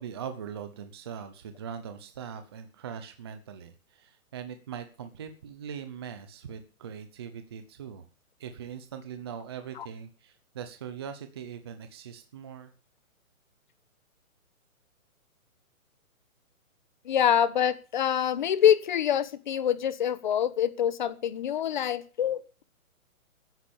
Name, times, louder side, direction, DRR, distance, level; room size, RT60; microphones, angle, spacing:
voice 1, 0.0-8.0 8.4-12.7, right 7 dB, 20° right, 8 dB, 0.7 m, -41 dB
voice 2, 17.0-22.6, left 9 dB, 35° left, 16 dB, 1.2 m, -25 dB
15.0 x 10.0 x 7.1 m, 0.35 s
hypercardioid pair, 170°, 42 cm